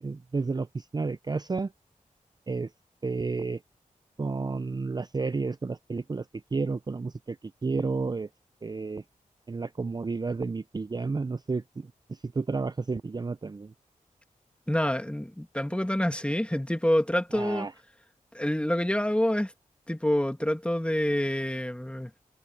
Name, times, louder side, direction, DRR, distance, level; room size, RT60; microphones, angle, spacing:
voice 1, 0.0-1.7 2.5-2.7 3.0-3.6 4.2-6.2 6.5-7.4 7.6-8.3 8.6-9.0 9.5-13.7 17.3-17.7, right 4 dB, 30° right, 0.4 m, -31 dB
voice 2, 14.7-17.7 18.3-19.5 19.9-22.1, left 1 dB, 10° left, 2.0 m, -27 dB
cardioid pair, 60°, 14 cm